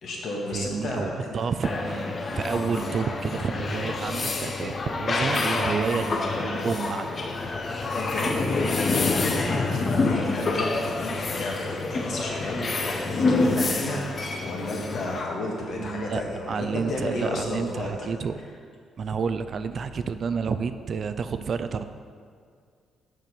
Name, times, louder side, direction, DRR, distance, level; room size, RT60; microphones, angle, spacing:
voice 1, 0.0-1.4 2.7-2.8 5.3-5.4 7.5-7.6 7.9-14.0 14.4-18.1, left 1 dB, 65° left, -2 dB, 1.6 m, -32 dB
voice 2, 0.5-7.1 15.8-18.4 19.0-21.8, right 5 dB, 50° right, 10 dB, 0.4 m, -30 dB
sound 1, 1.6-15.2, left 3 dB, 40° left, 0.7 m, -27 dB
6.2 x 5.1 x 6.0 m, 2.1 s
cardioid pair, 90°, 0 cm